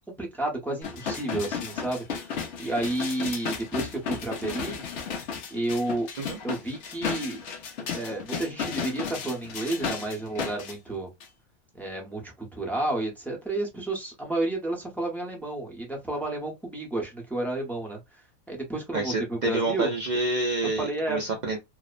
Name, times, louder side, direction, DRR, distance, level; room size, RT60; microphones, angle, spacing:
voice 1, 0.2-4.8 5.5-6.1 6.4-7.4 7.9-11.1 11.7-19.9 20.8-21.2, right 2 dB, ahead, 0.6 m, -31 dB
sound 1, 0.8-10.7 11.2-11.3, left 6 dB, 60° left, 0.9 m, -34 dB
voice 2, 18.9-21.6, right 2 dB, 75° right, 0.4 m, -28 dB
2.8 x 2.0 x 2.4 m
omnidirectional pair, 1.5 m